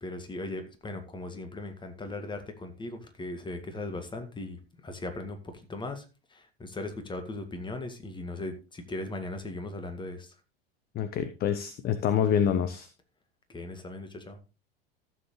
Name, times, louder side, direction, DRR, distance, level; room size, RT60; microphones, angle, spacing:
voice 1, 0.0-6.1 6.3-10.3 13.5-14.4, left 2 dB, 15° left, 7 dB, 2.0 m, -38 dB
voice 2, 10.9-12.9, left 8 dB, 30° left, 12 dB, 0.8 m, -26 dB
14.5 x 7.4 x 3.2 m, 0.31 s
figure-of-eight pair, 75°, 30 cm